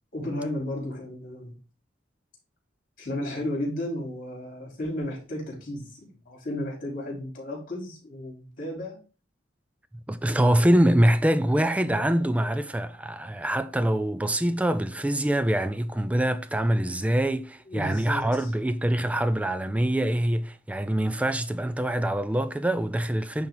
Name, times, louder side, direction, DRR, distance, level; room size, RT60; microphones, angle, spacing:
voice 1, 0.1-1.5 3.0-9.0 11.5-12.8 16.5-17.0 17.7-18.5, left 1 dB, 45° left, 3.9 m, -34 dB
voice 2, 10.1-23.5, right 1 dB, 5° right, 0.4 m, -24 dB
10.5 x 3.5 x 3.9 m
head